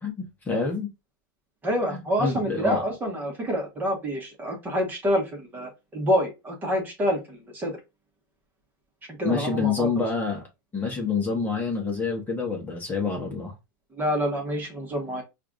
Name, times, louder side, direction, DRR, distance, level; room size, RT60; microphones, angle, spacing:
voice 1, 0.0-0.9 1.9-2.8 9.2-10.4 10.7-13.5, left 4 dB, 15° left, 1.0 m, -27 dB
voice 2, 1.6-7.8 9.2-9.9 13.9-15.2, equal, 15° right, 1.3 m, -27 dB
4.6 x 2.6 x 2.2 m
supercardioid pair, 135°, 11 cm